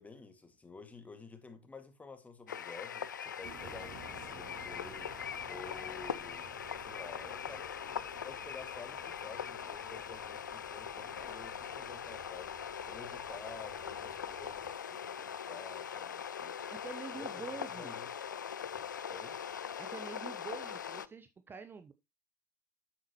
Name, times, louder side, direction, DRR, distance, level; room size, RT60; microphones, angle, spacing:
voice 1, 0.0-5.2 5.4-6.5 6.8-16.6 17.1-17.5 17.8-18.1 19.1-19.4, left 4 dB, 15° left, 2.1 m, -51 dB
sound 1, 2.5-21.1, left 8 dB, 75° left, 0.4 m, -41 dB
sound 2, 3.4-14.7, right 6 dB, 45° right, 3.2 m, -56 dB
Skateboard, 9.1-17.4, left 5 dB, 55° left, 2.3 m, -64 dB
voice 2, 16.7-18.0 19.8-21.9, right 5 dB, 20° right, 0.8 m, -46 dB
9.6 x 7.7 x 3.0 m
figure-of-eight pair, 75°, 10 cm